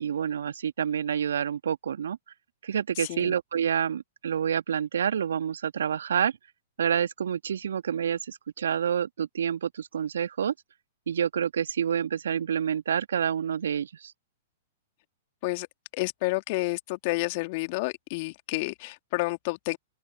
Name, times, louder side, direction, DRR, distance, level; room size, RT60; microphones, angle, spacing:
voice 1, 0.0-2.2 2.6-6.3 6.8-10.5 11.1-14.1, right 8 dB, 70° right, 1.9 m, -28 dB
voice 2, 3.0-3.3 15.4-15.7 15.9-19.8, left 25 dB, 45° left, 2.6 m, -30 dB
open air
figure-of-eight pair, 105°, 0 cm